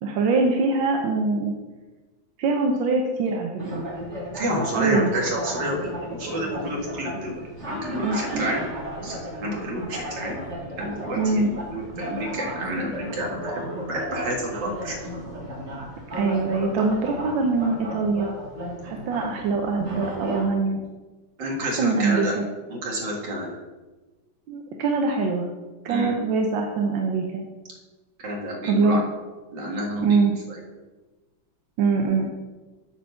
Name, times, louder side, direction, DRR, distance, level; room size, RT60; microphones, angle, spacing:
voice 1, 0.0-1.5 2.4-3.8 4.7-5.1 8.0-8.5 11.2-11.5 16.1-18.3 18.8-20.8 21.6-22.4 24.5-25.5 25.9-27.4 28.6-29.0 30.0-30.4 31.8-32.3, right 4 dB, 90° right, 2 dB, 1.6 m, -23 dB
sound 1, 3.6-20.5, equal, 35° right, 2.4 m, -34 dB
voice 2, 4.3-8.6 9.0-10.4 10.8-11.4 11.7-13.6 13.9-15.1 21.4-22.3 22.7-23.6 25.9-26.2 28.2-29.0 29.5-30.2 30.5-30.6, equal, 65° right, -1 dB, 2.5 m, -29 dB
8.7 x 4.7 x 6.9 m, 1.2 s
omnidirectional pair, 2.0 m